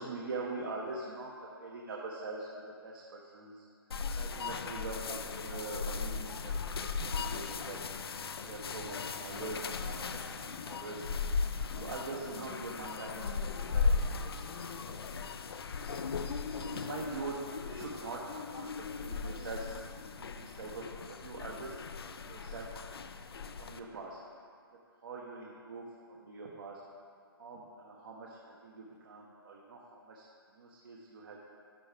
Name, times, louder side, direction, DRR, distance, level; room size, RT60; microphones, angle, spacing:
voice 1, 0.0-3.6 4.2-8.1 8.4-11.0 11.7-13.3 13.6-13.9 14.1-15.0 16.6-17.3 17.6-18.2 18.5-19.7 20.2-22.7 23.6-24.2 25.0-26.8 27.4-30.3 30.5-31.4, right 3 dB, 60° right, -3 dB, 1.1 m, -43 dB
sound 1, 3.9-23.8, left 5 dB, 75° left, 0.5 m, -37 dB
13.0 x 4.7 x 3.5 m, 2.2 s
hypercardioid pair, 140°, 13 cm